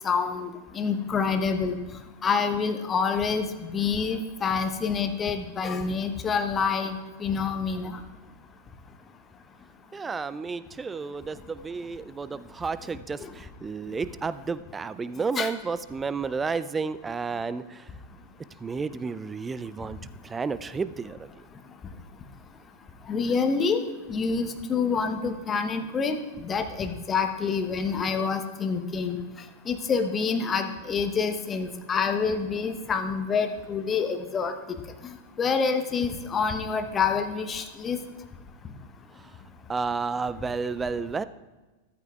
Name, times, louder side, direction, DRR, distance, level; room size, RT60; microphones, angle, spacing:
voice 1, 0.0-1.8 2.2-8.0 13.2-13.3 15.4-15.5 23.1-23.8 24.1-29.2 29.6-34.5 35.4-38.0, left 5 dB, 20° left, 7 dB, 0.9 m, -27 dB
voice 2, 9.9-17.8 18.6-20.0 20.2-21.3 39.7-41.2, right 4 dB, 15° right, 15 dB, 0.4 m, -31 dB
14.0 x 13.0 x 2.3 m, 1.2 s
figure-of-eight pair, 90°, 0 cm